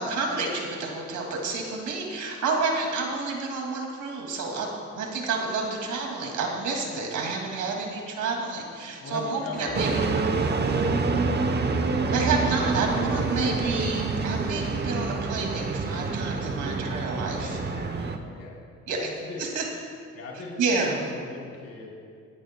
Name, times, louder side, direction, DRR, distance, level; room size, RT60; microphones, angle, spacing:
voice 1, 0.0-4.7 4.9-10.0 12.1-17.6 18.9-19.1 19.4-19.6 20.6-20.9, right 4 dB, 75° right, 0 dB, 2.5 m, -29 dB
voice 2, 9.0-10.7 11.9-12.4 17.4-18.6 18.9-19.6 20.1-20.6 20.9-21.9, left 3 dB, 55° left, -4 dB, 3.6 m, -40 dB
sound 1, 9.6-12.0, left 1 dB, ahead, 3.0 m, -46 dB
sound 2, 9.7-18.2, right 3 dB, 35° right, 0.9 m, -27 dB
25.5 x 10.0 x 2.3 m, 2.3 s
cardioid pair, 90°, 30 cm